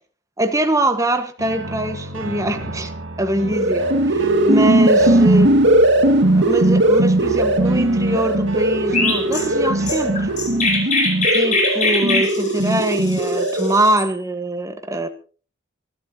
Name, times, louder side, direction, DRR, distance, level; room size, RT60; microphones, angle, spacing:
voice 1, 0.4-2.9 3.2-5.7 6.2-10.3 11.3-15.1, right 1 dB, 15° right, 1.5 m, -23 dB
sound 1, 1.4-10.8, right 2 dB, 85° right, 2.0 m, -33 dB
sound 2, 3.4-13.9, right 1 dB, 60° right, 2.2 m, -18 dB
Chirp tweet, 8.9-14.1, left 3 dB, 40° left, 5.2 m, -22 dB
26.5 x 12.0 x 2.9 m
head